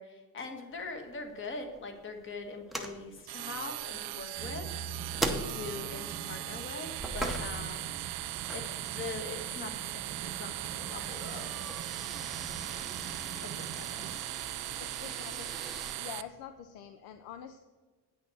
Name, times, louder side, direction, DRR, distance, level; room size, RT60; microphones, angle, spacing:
voice 1, 0.0-8.0 8.5-11.6 13.4-14.0, left 3 dB, 30° left, 5 dB, 1.4 m, -42 dB
sound 1, 0.7-15.9, right 1 dB, ahead, 0.7 m, -42 dB
sound 2, 3.3-16.2, right 18 dB, 85° right, 0.6 m, -39 dB
sound 3, 4.4-14.2, right 6 dB, 25° right, 0.4 m, -45 dB
voice 2, 5.4-5.9 14.8-15.6 15.9-17.6, left 9 dB, 80° left, 9 dB, 0.7 m, -46 dB
9.4 x 6.3 x 6.1 m, 1.4 s
cardioid pair, 160°, 37 cm